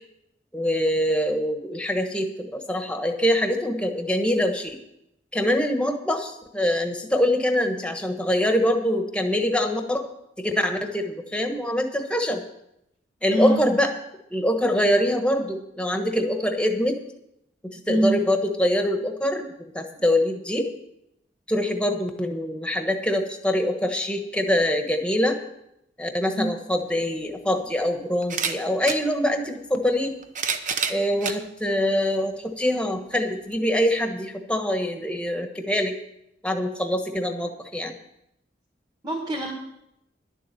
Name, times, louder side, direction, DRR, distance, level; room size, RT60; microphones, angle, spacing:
voice 1, 0.5-4.8 5.3-10.0 10.4-12.4 13.2-13.9 14.3-17.0 17.6-20.7 21.5-25.4 26.0-30.1 30.9-35.9 36.4-38.0, left 1 dB, 5° left, 5 dB, 1.2 m, -24 dB
voice 2, 13.3-13.6 17.9-18.2 26.4-26.5 39.0-39.5, right 1 dB, 25° right, -4 dB, 1.7 m, -23 dB
sound 1, 26.8-26.9 28.2-29.0 30.0-31.4 32.1-32.2 33.5-33.6, right 6 dB, 45° right, 0.8 m, -28 dB
11.5 x 7.1 x 8.2 m, 0.82 s
head